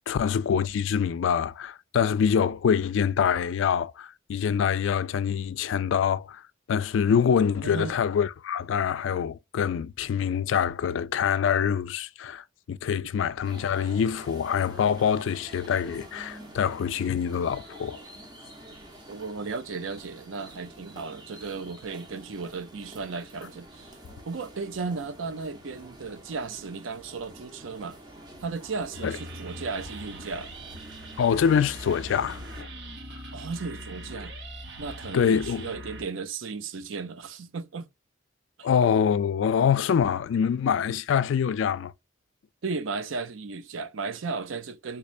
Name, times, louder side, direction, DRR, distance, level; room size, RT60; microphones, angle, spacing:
voice 1, 0.1-6.4 6.7-18.0 29.0-29.1 31.2-32.7 35.1-35.7 38.6-41.9, left 7 dB, 75° left, 0.3 m, -25 dB
voice 2, 7.6-7.9 19.1-24.0 24.3-28.0 28.4-30.5 33.3-34.3 34.8-37.9 38.6-38.7 42.6-45.0, right 4 dB, 80° right, 0.5 m, -35 dB
sound 1, 13.4-32.6, right 1 dB, 20° right, 0.7 m, -47 dB
sound 2, 28.9-36.0, right 1 dB, 60° right, 1.0 m, -41 dB
3.6 x 3.1 x 2.4 m
head